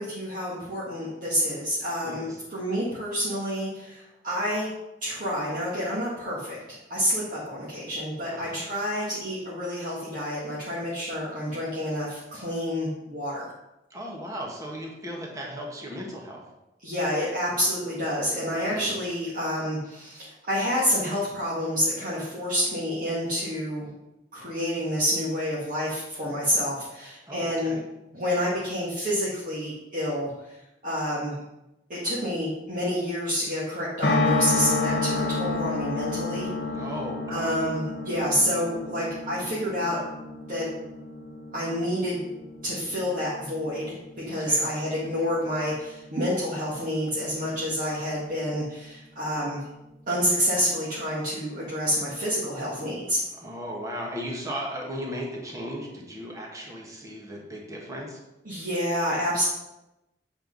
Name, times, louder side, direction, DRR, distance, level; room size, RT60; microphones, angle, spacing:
voice 1, 0.0-4.7 5.0-13.5 16.8-23.9 24.3-27.8 28.1-30.6 30.8-31.4 31.9-36.5 37.3-40.0 40.5-40.7 41.5-42.2 42.6-44.0 44.3-49.7 50.1-53.2 58.5-59.5, equal, 50° right, -8 dB, 1.8 m, -28 dB
voice 2, 8.3-8.6 13.9-16.4 18.5-18.9 27.3-27.8 36.7-37.6 38.3-38.4 44.3-44.7 53.4-58.2, equal, 20° right, -2 dB, 1.4 m, -36 dB
sound 1, 34.0-46.2 46.5-46.6 46.8-46.9, left 3 dB, 75° left, 1.2 m, -30 dB
7.8 x 4.4 x 5.3 m, 0.93 s
head